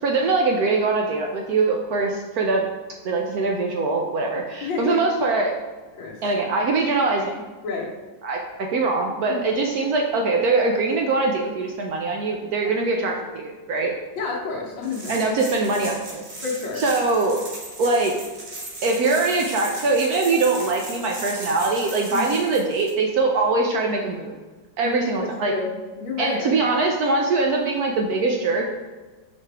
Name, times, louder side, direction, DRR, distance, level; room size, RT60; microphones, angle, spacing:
voice 1, 0.0-2.7 3.0-5.5 6.2-7.4 8.2-13.9 15.1-16.2 16.8-17.4 17.8-18.1 18.8-24.4 24.8-25.5 26.2-28.7, right 3 dB, 70° right, 1 dB, 0.9 m, -22 dB
voice 2, 4.6-5.0 5.9-6.2 7.6-7.9 9.3-9.4 12.6-12.7 14.2-15.2 16.4-16.9 22.1-22.2 24.8-26.5, left 4 dB, 80° left, -4 dB, 1.8 m, -29 dB
sound 1, 14.8-22.9, right 2 dB, 40° right, 0.6 m, -37 dB
5.5 x 5.0 x 3.4 m, 1.3 s
omnidirectional pair, 2.1 m